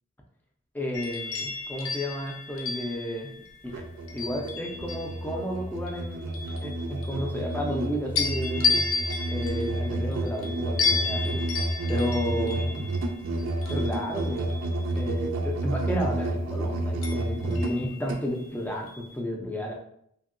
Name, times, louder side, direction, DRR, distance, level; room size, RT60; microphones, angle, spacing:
voice 1, 0.7-3.3 3.6-3.8 4.1-8.9 9.3-11.4 11.9-12.9 13.7-19.7, equal, 10° left, 0 dB, 0.3 m, -32 dB
sound 1, 0.9-5.3 5.9-7.8 8.2-15.1 17.0-18.4 18.9-19.1, left 4 dB, 80° left, 0.5 m, -33 dB
Musical instrument, 3.6-18.3, right 1 dB, 70° right, 0.4 m, -30 dB
2.8 x 2.6 x 2.5 m, 0.70 s
head